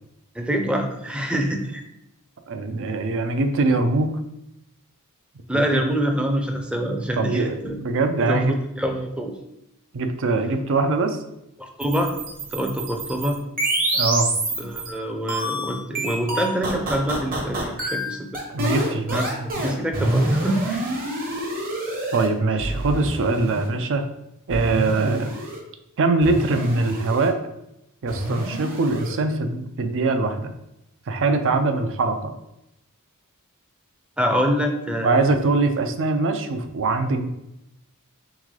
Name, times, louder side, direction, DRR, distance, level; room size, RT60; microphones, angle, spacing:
voice 1, 0.3-1.8 5.5-7.8 8.2-9.4 11.6-12.2 12.5-13.4 14.6-18.4 19.1-19.3 19.6-20.8 25.0-25.2 34.2-35.2, equal, 5° right, 3 dB, 0.5 m, -25 dB
voice 2, 2.5-4.2 5.5-5.8 7.2-8.6 9.9-11.2 13.9-14.3 18.5-19.2 22.1-24.1 24.5-25.3 26.0-27.3 28.0-30.5 31.1-32.3 35.0-37.3, right 3 dB, 60° right, 7 dB, 0.5 m, -22 dB
sound 1, 11.8-14.9 15.3-22.3 22.6-23.7 24.5-25.6 26.2-27.3 28.1-29.2, right 1 dB, 40° right, 1.0 m, -27 dB
3.7 x 3.6 x 3.2 m, 0.84 s
head